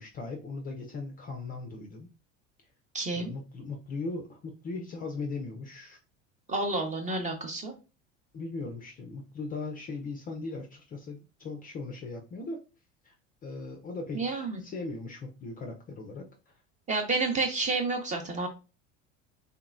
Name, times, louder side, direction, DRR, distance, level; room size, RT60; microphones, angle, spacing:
voice 1, 0.0-2.1 3.1-6.0 8.3-12.6 13.0-13.1 13.4-16.5, left 3 dB, 20° left, 3 dB, 0.5 m, -38 dB
voice 2, 2.9-3.3 6.5-7.7 14.1-14.6 16.9-18.5, right 3 dB, 20° right, 4 dB, 0.8 m, -30 dB
3.4 x 2.9 x 2.4 m, 0.31 s
figure-of-eight pair, 70°, 38 cm